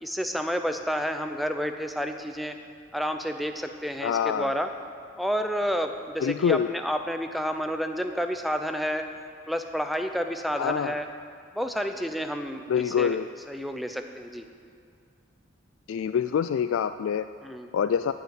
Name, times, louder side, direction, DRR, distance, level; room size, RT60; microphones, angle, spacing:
voice 1, 0.0-2.6 2.9-4.7 5.2-9.0 9.5-11.1 11.5-13.2 13.5-14.4 17.4-17.7, equal, ahead, 6 dB, 0.5 m, -30 dB
voice 2, 4.0-4.5 6.2-6.7 10.6-10.9 12.7-13.3 15.9-17.3 17.7-18.1, left 7 dB, 80° left, 11 dB, 0.3 m, -25 dB
15.0 x 5.6 x 8.9 m, 2.3 s
head